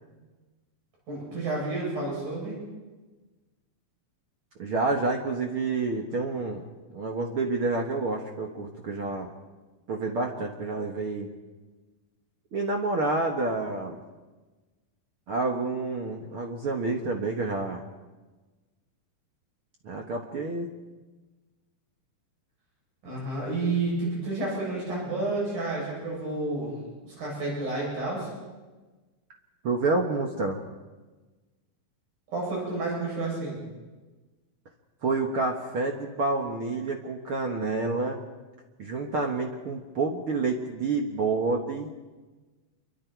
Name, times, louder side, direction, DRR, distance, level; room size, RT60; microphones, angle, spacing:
voice 1, 1.1-2.6 23.0-26.8 27.0-28.3 32.3-33.6, right 2 dB, 70° right, -4 dB, 9.9 m, -30 dB
voice 2, 4.6-6.6 6.9-9.3 9.9-11.3 12.5-14.0 15.3-17.8 19.8-20.7 29.6-30.6 35.0-38.2 38.8-41.9, right 3 dB, 55° right, 2 dB, 1.7 m, -28 dB
28.0 x 23.5 x 4.6 m, 1.2 s
omnidirectional pair, 4.2 m